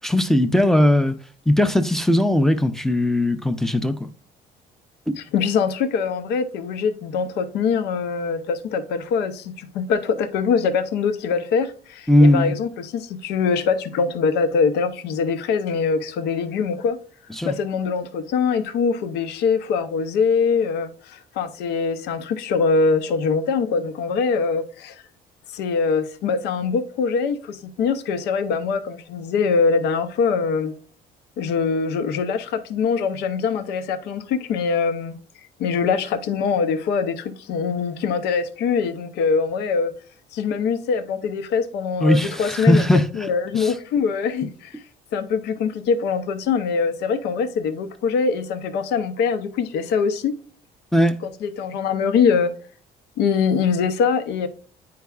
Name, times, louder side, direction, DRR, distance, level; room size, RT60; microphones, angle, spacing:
voice 1, 0.0-1.1 1.5-4.1 12.1-12.6 17.4-17.5 42.0-43.0 43.6-43.7 50.9-51.2, left 1 dB, ahead, 0.5 m, -18 dB
voice 2, 5.2-17.0 17.4-25.0 25.5-30.7 31.4-35.2 35.6-39.9 40.3-42.9 43.1-44.8 45.1-50.4 51.2-52.5 53.2-54.5, left 5 dB, 80° left, 0.7 m, -23 dB
9.4 x 4.6 x 2.3 m
cardioid pair, 110°, 17 cm